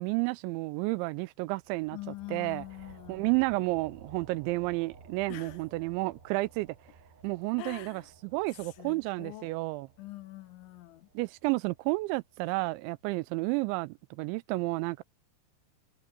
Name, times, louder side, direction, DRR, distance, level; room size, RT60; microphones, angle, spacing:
voice 1, 0.0-2.0 2.3-2.6 3.1-6.7 7.2-8.0 8.3-9.9 11.2-15.0, right 23 dB, 85° right, 2.8 m, -31 dB
sound 1, 1.6-12.7, right 5 dB, 60° right, 8.7 m, -56 dB
voice 2, 1.9-3.3 5.3-5.6 7.6-8.1 8.5-9.5 10.0-11.1, left 17 dB, 80° left, 3.6 m, -44 dB
omnidirectional pair, 5.4 m